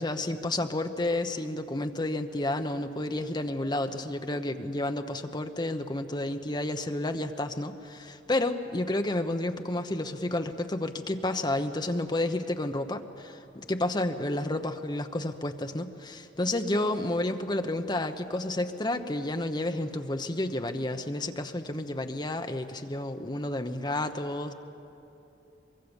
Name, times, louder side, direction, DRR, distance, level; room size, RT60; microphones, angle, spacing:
voice 1, 0.0-24.5, left 1 dB, 25° left, 6 dB, 1.0 m, -31 dB
24.0 x 22.0 x 7.2 m, 2.9 s
head